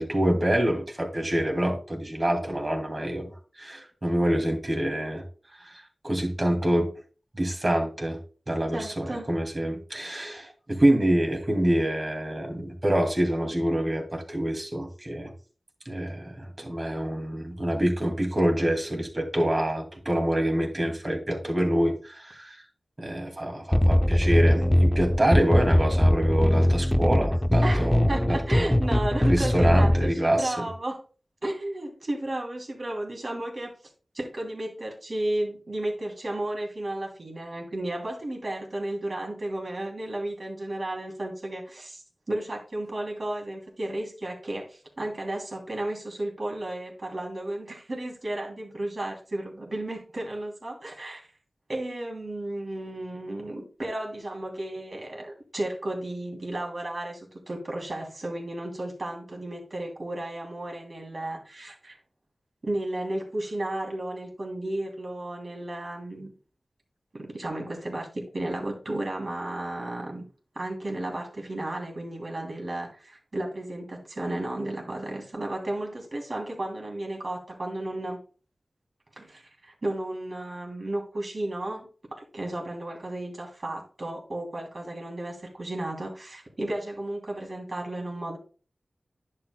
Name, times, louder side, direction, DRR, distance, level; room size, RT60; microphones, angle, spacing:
voice 1, 0.0-3.3 3.6-5.2 5.6-6.9 7.3-8.2 8.5-15.3 15.9-22.6 23.0-28.8 29.2-30.7, right 1 dB, 40° right, 2 dB, 2.3 m, -26 dB
voice 2, 8.7-9.3 27.6-31.0 31.4-33.7 34.1-42.0 42.3-51.2 51.7-62.0 62.6-66.3 67.1-70.2 70.5-78.2 79.2-88.4, right 1 dB, 55° right, 0 dB, 2.9 m, -33 dB
sound 1, 23.7-30.1, left 1 dB, 15° left, 0.4 m, -21 dB
10.5 x 7.6 x 2.2 m, 0.37 s
wide cardioid pair, 60°, 0 cm